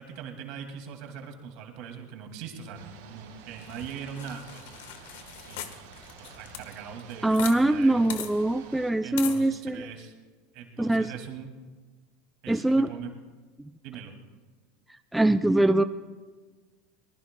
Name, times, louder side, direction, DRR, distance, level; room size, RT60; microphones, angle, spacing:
voice 1, 0.0-4.7 5.5-5.9 6.1-8.1 9.0-10.1 10.5-11.5 12.4-13.1 13.8-14.2, right 7 dB, 60° right, 3 dB, 2.2 m, -41 dB
sound 1, 2.7-8.9, right 5 dB, 80° right, 4.2 m, -50 dB
sound 2, 3.6-7.6 7.8-7.9 8.1-8.3 9.2-9.4, left 10 dB, 80° left, 1.2 m, -39 dB
voice 2, 7.2-9.9 10.8-11.1 12.5-12.9 13.6-13.7 15.1-15.8, right 1 dB, 5° right, 9 dB, 0.3 m, -23 dB
23.5 x 20.0 x 2.2 m, 1.4 s
supercardioid pair, 130°, 0 cm